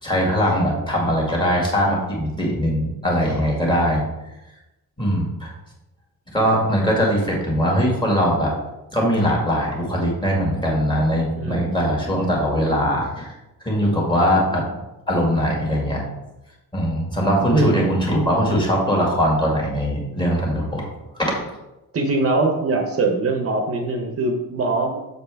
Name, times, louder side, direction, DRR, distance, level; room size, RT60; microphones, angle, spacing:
voice 1, 0.0-4.0 5.0-5.5 6.3-8.5 8.9-13.3 13.7-14.6 15.1-16.0 16.7-20.8 21.2-21.4, equal, 15° left, -2 dB, 1.8 m, -21 dB
voice 2, 11.4-11.8 14.5-14.7 17.5-17.9 21.9-25.0, right 2 dB, 40° right, 3 dB, 0.8 m, -22 dB
6.8 x 6.8 x 3.4 m, 0.98 s
wide cardioid pair, 165°, 35 cm